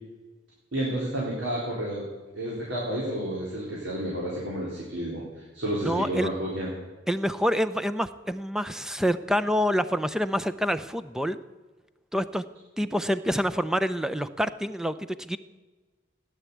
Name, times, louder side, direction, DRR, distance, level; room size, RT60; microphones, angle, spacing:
voice 1, 0.7-2.0 2.3-5.2 5.5-6.7, right 1 dB, 85° right, -5 dB, 4.0 m, -30 dB
voice 2, 5.8-6.3 7.1-11.4 12.1-12.4 12.8-15.4, equal, 5° right, 12 dB, 0.6 m, -27 dB
16.5 x 10.5 x 8.4 m, 1.3 s
head